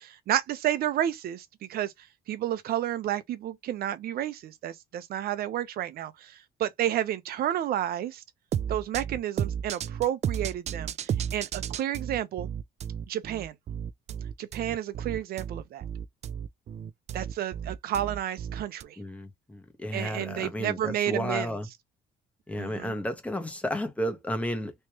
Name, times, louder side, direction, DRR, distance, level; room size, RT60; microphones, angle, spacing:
voice 1, 0.0-8.2 8.7-12.5 13.1-13.5 14.4-15.8 17.1-19.0 19.9-21.5 22.6-22.9, right 11 dB, 65° right, 0.8 m, -31 dB
sound 1, 8.5-18.8, right 8 dB, 40° right, 0.4 m, -33 dB
voice 2, 19.0-21.7 22.5-24.7, equal, 10° left, 1.3 m, -32 dB
3.2 x 3.1 x 3.1 m
cardioid pair, 110°, 17 cm